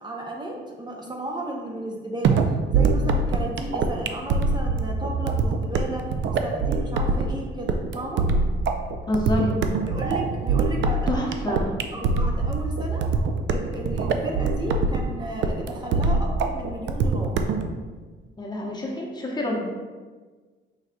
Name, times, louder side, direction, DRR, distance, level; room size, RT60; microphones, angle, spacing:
voice 1, 0.0-2.4 2.7-6.0 6.4-8.2 9.9-11.6 11.9-13.0 13.5-17.4, right 1 dB, 20° right, -1 dB, 0.6 m, -34 dB
sound 1, 2.2-17.7, right 4 dB, 70° right, 0.4 m, -23 dB
voice 2, 9.1-9.6 11.1-11.7 18.4-19.6, left 1 dB, 20° left, -1 dB, 0.8 m, -27 dB
4.8 x 3.9 x 2.2 m, 1.4 s
cardioid pair, 90°, 20 cm